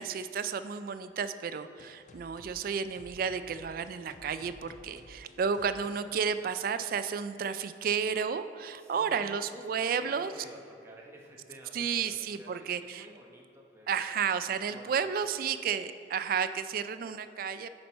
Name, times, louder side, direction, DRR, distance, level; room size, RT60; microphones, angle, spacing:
voice 1, 0.0-10.3 11.7-13.0 13.9-17.7, right 6 dB, 50° right, 12 dB, 0.3 m, -32 dB
sound 1, 1.8-7.2, left 1 dB, 40° left, 0.5 m, -55 dB
voice 2, 8.7-14.2 14.5-15.4, right 1 dB, 15° right, -2 dB, 0.9 m, -52 dB
8.7 x 5.4 x 4.2 m, 2.6 s
head